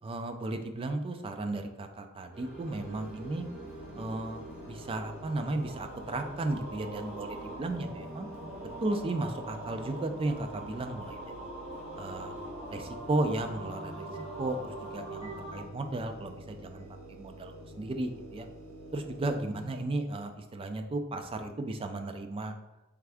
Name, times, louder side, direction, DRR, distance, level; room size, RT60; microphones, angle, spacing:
voice 1, 0.0-3.5 4.0-8.3 8.8-11.5 12.0-12.4 12.7-14.1 14.4-18.5 18.9-22.5, right 2 dB, 25° right, 6 dB, 0.3 m, -35 dB
sound 1, 2.3-15.6, right 1 dB, 5° right, 1.3 m, -43 dB
sound 2, 2.6-19.8, equal, 80° right, 0.9 m, -49 dB
sound 3, 13.7-18.8, equal, 25° left, 1.1 m, -54 dB
3.5 x 3.5 x 3.4 m, 0.95 s
head